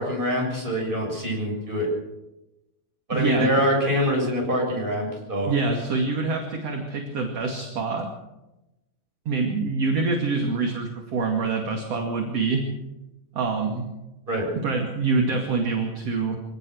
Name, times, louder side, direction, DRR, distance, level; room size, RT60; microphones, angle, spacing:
voice 1, 0.0-1.9 3.1-5.5 14.3-14.5, equal, 10° right, 0 dB, 7.4 m, -24 dB
voice 2, 3.1-3.6 5.5-8.1 9.3-12.7 13.3-13.9 14.5-16.4, right 4 dB, 45° right, 2 dB, 3.0 m, -25 dB
25.5 x 18.0 x 6.4 m, 0.98 s
omnidirectional pair, 4.3 m